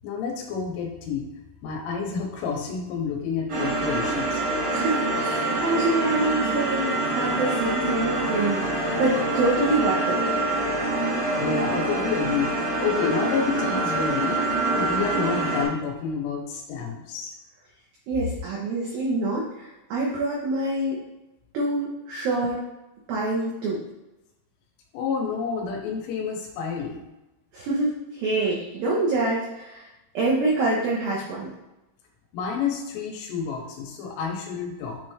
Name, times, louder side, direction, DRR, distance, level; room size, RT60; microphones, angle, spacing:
voice 1, 0.0-1.3 1.6-4.4 11.4-14.4 14.7-17.3 24.9-27.0 32.3-35.0, left 6 dB, 90° left, 0 dB, 3.4 m, -29 dB
sound 1, 3.5-15.6, right 2 dB, 55° right, 1.4 m, -25 dB
voice 2, 4.7-10.2 18.1-21.0 21.5-22.6 23.1-23.8 27.5-29.9 30.1-31.5, right 2 dB, 90° right, -5 dB, 2.0 m, -26 dB
9.7 x 3.2 x 3.1 m, 0.99 s
omnidirectional pair, 5.7 m